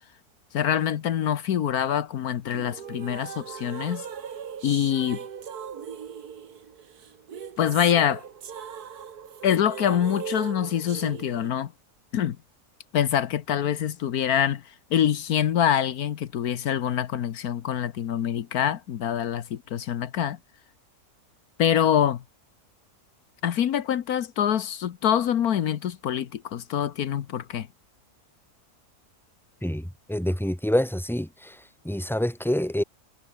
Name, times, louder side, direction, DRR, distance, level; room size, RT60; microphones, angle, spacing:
voice 1, 0.5-4.0 4.6-5.2 7.6-8.2 9.4-11.7 12.1-12.4 12.9-14.6 14.9-20.4 21.6-22.2 23.4-27.7, left 9 dB, 80° left, 1.5 m, -25 dB
sound 1, 2.5-11.5, right 7 dB, 90° right, 2.0 m, -39 dB
voice 2, 29.6-31.6 31.8-32.8, left 1 dB, ahead, 2.9 m, -26 dB
omnidirectional pair, 1.6 m